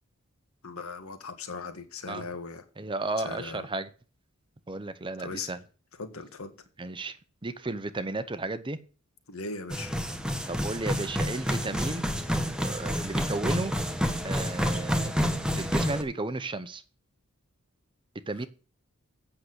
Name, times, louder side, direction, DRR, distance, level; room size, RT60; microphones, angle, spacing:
voice 1, 0.6-2.6 3.2-3.7 5.2-5.6 5.9-6.5 9.3-9.9, left 4 dB, 70° left, 1.8 m, -39 dB
voice 2, 2.8-3.9 4.7-5.6 6.8-7.2 7.4-8.8 10.5-12.0 12.6-13.7 14.2-16.8 18.3-18.5, right 2 dB, 20° right, 0.6 m, -33 dB
sound 1, 9.7-16.0, equal, 5° right, 1.1 m, -29 dB
8.6 x 6.5 x 7.9 m
head